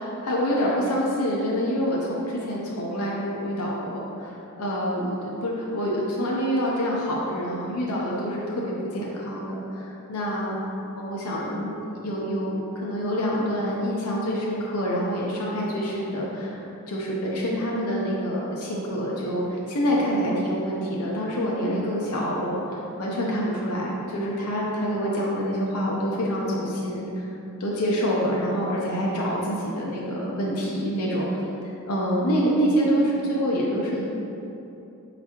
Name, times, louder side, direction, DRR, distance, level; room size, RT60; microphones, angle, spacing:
voice 1, 0.0-10.6 11.0-27.3 27.6-31.3 31.6-34.1, equal, 85° left, -4 dB, 0.7 m, -26 dB
4.6 x 3.9 x 2.9 m, 2.9 s
head